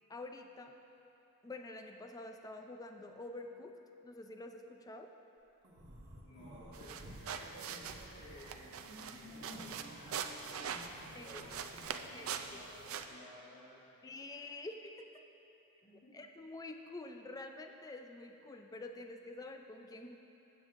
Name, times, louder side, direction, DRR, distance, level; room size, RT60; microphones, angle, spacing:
voice 1, 0.1-0.7 1.4-3.8 4.0-5.1 11.1-11.4 12.1-12.3 14.0-15.1 16.1-20.2, left 2 dB, 15° left, 5 dB, 0.4 m, -47 dB
sound 1, 5.6-7.2 7.6-11.9, equal, 55° right, 1.2 m, -54 dB
voice 2, 6.2-14.0 15.8-16.2, equal, 65° left, -11 dB, 2.0 m, -55 dB
sound 2, 6.7-13.1, right 7 dB, 80° right, 0.4 m, -43 dB
16.5 x 7.5 x 2.5 m, 3.0 s
head